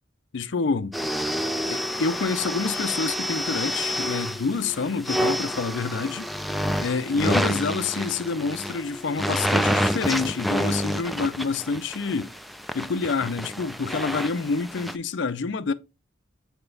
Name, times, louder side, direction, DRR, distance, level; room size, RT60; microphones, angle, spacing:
voice 1, 0.3-0.9 1.7-6.3 6.8-12.3 12.7-15.7, left 4 dB, 60° left, 0.5 m, -27 dB
sound 1, 0.9-15.0, equal, ahead, 0.3 m, -28 dB
sound 2, 4.2-10.6, left 3 dB, 25° left, 0.9 m, -44 dB
6.9 x 4.4 x 3.9 m
head